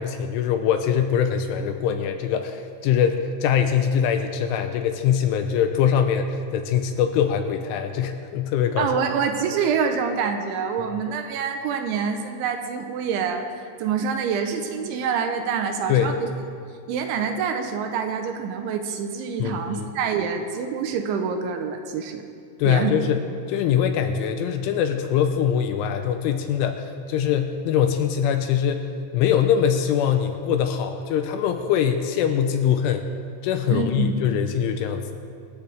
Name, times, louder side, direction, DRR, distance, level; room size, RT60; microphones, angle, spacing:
voice 1, 0.0-8.9 15.9-16.1 19.4-19.9 22.6-23.2 23.5-33.1 33.4-35.2, left 8 dB, 85° left, 6 dB, 3.0 m, -23 dB
voice 2, 8.8-13.5 13.8-16.3 16.9-22.2 22.6-23.0 33.7-34.2, right 6 dB, 75° right, 5 dB, 3.0 m, -26 dB
24.5 x 14.0 x 3.5 m, 2.3 s
omnidirectional pair, 6.0 m